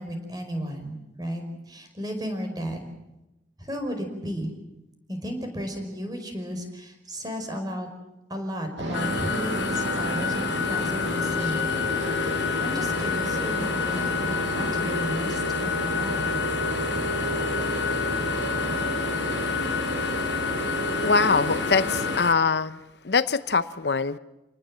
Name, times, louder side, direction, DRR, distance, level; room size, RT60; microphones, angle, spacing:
voice 1, 0.0-2.8 3.6-4.5 5.1-7.9 8.3-11.6 12.6-16.4, equal, 20° right, 5 dB, 5.2 m, -34 dB
sound 1, 8.8-22.2, equal, 80° right, 7.2 m, -29 dB
sound 2, 8.9-22.3, left 9 dB, 85° left, 1.2 m, -30 dB
voice 2, 21.0-22.8 23.0-24.2, left 4 dB, 65° left, 13 dB, 0.8 m, -23 dB
28.5 x 19.5 x 7.6 m, 0.97 s
head